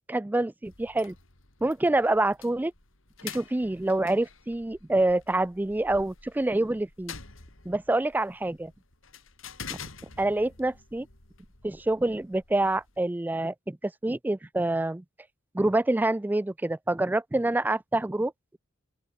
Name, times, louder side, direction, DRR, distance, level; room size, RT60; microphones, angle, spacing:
voice 1, 0.1-1.1 1.6-2.7 3.2-7.1 7.7-8.7 10.2-11.1 11.6-15.0 15.5-18.3, right 2 dB, 10° right, 0.3 m, -26 dB
sound 1, 0.6-13.1, left 6 dB, 85° left, 4.5 m, -47 dB
open air
head